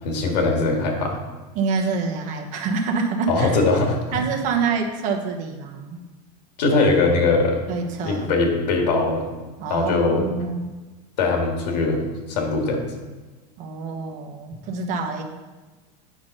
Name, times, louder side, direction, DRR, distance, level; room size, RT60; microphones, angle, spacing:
voice 1, 0.0-1.2 3.3-4.2 6.6-7.7 8.0-9.3 9.7-10.3 11.2-12.9, left 3 dB, 90° left, 2 dB, 2.0 m, -21 dB
voice 2, 1.5-3.6 4.1-6.0 7.7-8.3 9.6-10.7 13.6-15.2, right 4 dB, 40° right, 3 dB, 1.1 m, -26 dB
8.7 x 5.4 x 5.4 m, 1.2 s
supercardioid pair, 165°, 21 cm